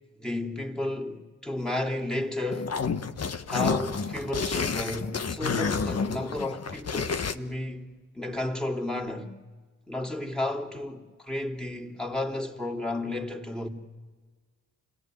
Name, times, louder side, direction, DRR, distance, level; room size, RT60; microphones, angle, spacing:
voice 1, 0.1-2.8 3.5-9.3 9.9-13.7, left 1 dB, ahead, 3.3 m, -32 dB
sound 1, 2.5-7.3, left 5 dB, 45° left, 1.4 m, -30 dB
28.5 x 18.0 x 9.3 m
supercardioid pair, 50°, 36 cm